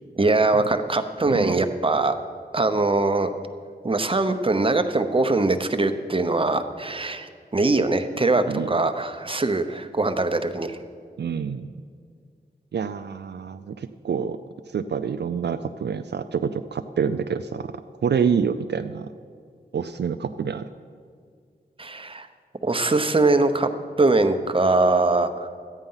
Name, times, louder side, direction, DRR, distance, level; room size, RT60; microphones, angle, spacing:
voice 1, 0.2-2.1 2.5-3.3 3.8-10.8 21.8-22.3 22.6-23.7 24.0-25.5, right 2 dB, 30° right, 8 dB, 0.9 m, -22 dB
voice 2, 1.3-1.6 8.5-8.7 11.2-11.7 12.7-14.4 14.7-17.7 18.0-19.1 19.7-20.7, right 6 dB, 75° right, 9 dB, 0.4 m, -27 dB
13.0 x 9.0 x 5.6 m, 2.1 s
cardioid pair, 45°, 18 cm